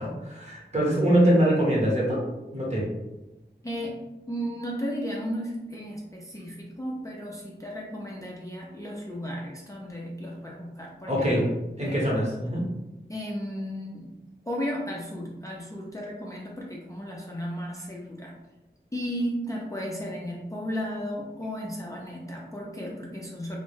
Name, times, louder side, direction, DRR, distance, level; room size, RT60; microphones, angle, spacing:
voice 1, 0.0-2.2 2.5-2.9 11.1-11.4 11.8-12.6, right 1 dB, 35° right, -4 dB, 0.9 m, -23 dB
voice 2, 3.6-4.0 4.3-11.5 11.8-12.0 13.1-14.1 14.5-18.4 18.9-23.6, equal, 15° left, -4 dB, 0.4 m, -34 dB
2.2 x 2.0 x 3.1 m, 1.0 s
wide cardioid pair, 50°, 18 cm